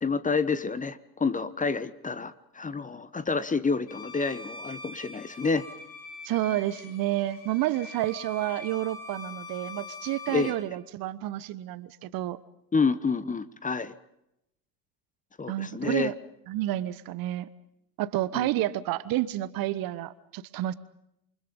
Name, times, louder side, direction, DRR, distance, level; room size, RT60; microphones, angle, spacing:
voice 1, 0.0-5.7 10.3-10.6 12.7-13.9 15.4-16.1 18.3-18.5, left 4 dB, 15° left, 14 dB, 1.1 m, -28 dB
Bowed string instrument, 3.9-10.7, left 3 dB, 80° left, 5.9 m, -43 dB
voice 2, 6.2-12.4 15.5-16.1 16.5-17.5 18.0-20.7, right 15 dB, 45° right, 16 dB, 1.2 m, -30 dB
28.0 x 25.0 x 5.4 m, 0.82 s
figure-of-eight pair, 75°, 49 cm